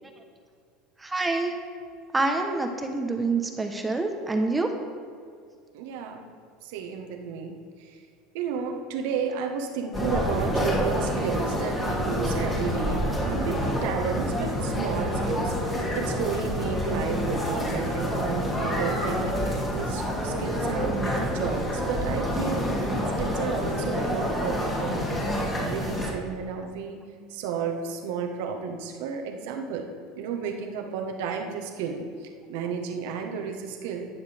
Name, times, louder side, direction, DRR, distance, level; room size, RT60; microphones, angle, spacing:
voice 1, 1.0-1.5 2.1-4.7, right 3 dB, 15° right, 4 dB, 1.1 m, -26 dB
voice 2, 5.7-6.3 6.6-8.0 8.3-22.6 23.0-27.0 27.3-29.9 30.2-34.1, right 6 dB, 75° right, 3 dB, 1.4 m, -32 dB
sound 1, 9.9-26.1, equal, 20° left, 2.9 m, -27 dB
20.0 x 7.2 x 3.6 m, 2.2 s
supercardioid pair, 95°, 0 cm